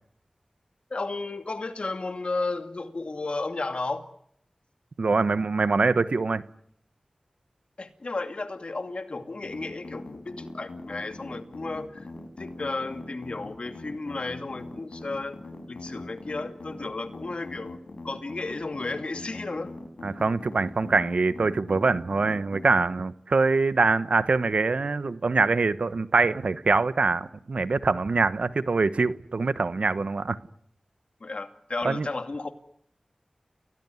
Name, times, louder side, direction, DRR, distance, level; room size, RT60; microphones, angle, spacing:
voice 1, 0.9-4.1 7.8-12.1 12.4-15.4 15.7-19.7 31.2-32.6, left 3 dB, 65° left, 2.6 m, -33 dB
voice 2, 5.0-6.4 20.0-30.4 31.8-32.1, right 3 dB, 75° right, 1.2 m, -24 dB
sound 1, 9.4-22.8, left 2 dB, 85° left, 6.1 m, -41 dB
29.5 x 18.5 x 9.7 m
wide cardioid pair, 45°, 2 cm